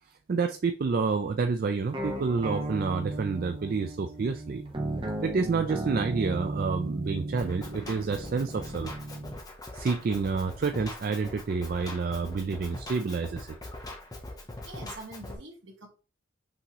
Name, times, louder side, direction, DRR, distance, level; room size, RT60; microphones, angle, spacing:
voice 1, 0.3-4.6 5.2-8.9 9.7-13.6, right 4 dB, 45° right, 6 dB, 0.3 m, -29 dB
sound 1, 1.9-9.4, right 2 dB, 25° right, 0.7 m, -35 dB
Drum kit, 7.4-15.4, left 1 dB, 20° left, 0.7 m, -42 dB
voice 2, 14.6-15.9, right 2 dB, 65° right, 1 dB, 1.5 m, -44 dB
5.9 x 3.0 x 2.9 m, 0.34 s
head